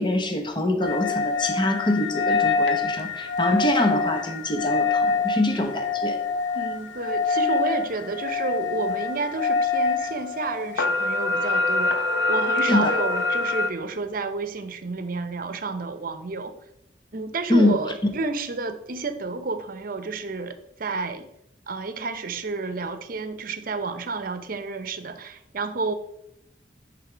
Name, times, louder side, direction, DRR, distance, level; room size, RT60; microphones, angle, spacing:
voice 1, 0.0-6.2 12.7-12.9 17.5-17.8, left 1 dB, 25° left, 5 dB, 1.0 m, -24 dB
sound 1, 0.8-13.7, left 4 dB, 75° left, 0.7 m, -25 dB
voice 2, 6.5-16.5 17.1-21.3 21.7-25.9, right 3 dB, 55° right, 10 dB, 0.8 m, -30 dB
10.0 x 3.4 x 5.0 m, 0.79 s
head